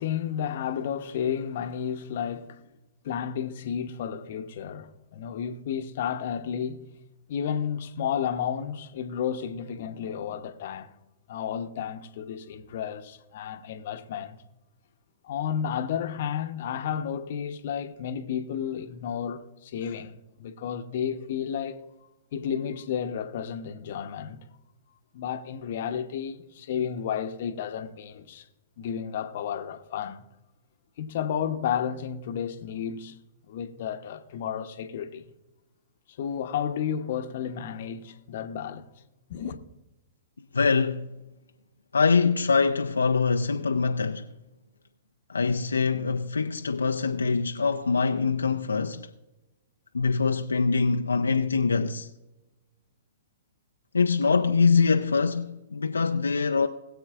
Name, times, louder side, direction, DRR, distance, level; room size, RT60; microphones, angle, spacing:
voice 1, 0.0-2.6 3.0-6.8 7.3-10.9 11.3-14.4 15.2-21.8 22.3-24.5 25.1-28.5 28.8-30.3 31.0-33.2 33.5-35.3 36.2-38.9 39.3-39.6, left 8 dB, 55° left, 0.9 m, -32 dB
voice 2, 40.5-41.1 41.9-44.3 45.3-49.1 49.9-52.1 53.9-56.7, left 4 dB, 80° left, 0.5 m, -24 dB
21.0 x 7.9 x 2.5 m
figure-of-eight pair, 110°, 0 cm